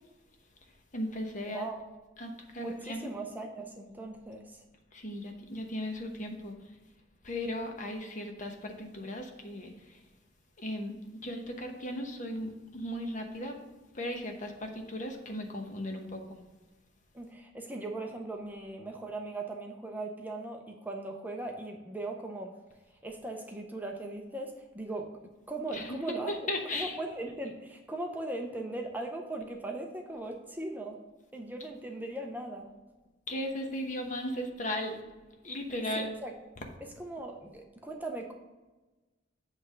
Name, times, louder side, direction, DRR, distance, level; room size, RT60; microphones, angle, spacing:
voice 1, 0.9-1.7 2.2-3.1 4.9-6.7 7.2-10.0 10.6-13.6 13.9-16.4 25.7-27.0 33.3-35.0 35.4-36.1, left 1 dB, 40° left, 3 dB, 0.9 m, -37 dB
voice 2, 2.6-4.6 17.1-22.5 23.0-25.1 25.5-26.3 26.7-31.0 31.3-32.7 36.0-36.3 37.0-38.3, right 2 dB, 10° right, 2 dB, 0.5 m, -39 dB
7.8 x 3.3 x 6.4 m, 1.2 s
head